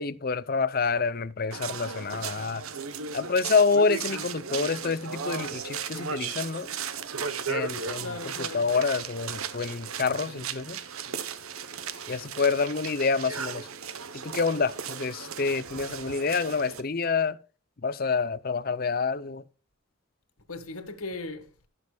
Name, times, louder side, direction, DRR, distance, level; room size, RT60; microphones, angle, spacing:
voice 1, 0.0-2.6 3.1-6.7 7.5-10.8 12.1-13.7 14.1-17.4 17.8-19.4, left 4 dB, 45° left, 0.6 m, -27 dB
sound 1, 1.5-16.8, right 6 dB, 80° right, 1.0 m, -36 dB
voice 2, 8.0-8.6 20.5-21.7, left 3 dB, 90° left, 1.9 m, -38 dB
18.5 x 6.4 x 2.3 m
head